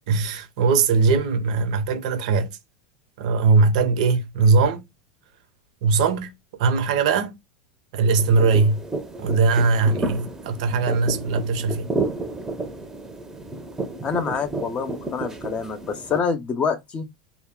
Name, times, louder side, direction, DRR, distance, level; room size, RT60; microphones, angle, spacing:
voice 1, 0.0-2.6 3.2-4.9 5.8-6.3 6.6-7.4 7.9-8.8 9.2-11.9, right 4 dB, 70° right, 0.7 m, -20 dB
sound 1, 8.2-16.2, right 2 dB, 10° right, 0.6 m, -31 dB
voice 2, 14.0-17.1, left 6 dB, 30° left, 0.6 m, -26 dB
2.2 x 2.0 x 3.6 m
hypercardioid pair, 105°, 4 cm